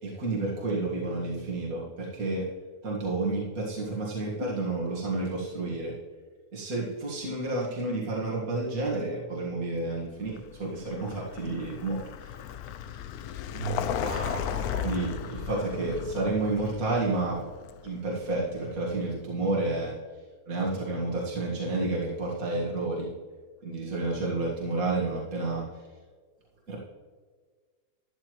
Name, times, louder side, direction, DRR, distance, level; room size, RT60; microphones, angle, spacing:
voice 1, 0.0-2.5 2.8-6.0 6.5-12.3 14.8-17.4 17.8-19.9 20.5-23.1 23.6-25.6 26.7-26.8, right 2 dB, 60° right, -4 dB, 2.3 m, -30 dB
Vehicle, 10.2-19.0, left 9 dB, 75° left, 1.1 m, -36 dB
voice 2, 13.5-15.0, right 4 dB, 85° right, -4 dB, 3.8 m, -36 dB
12.5 x 11.0 x 3.1 m, 1.5 s
omnidirectional pair, 1.7 m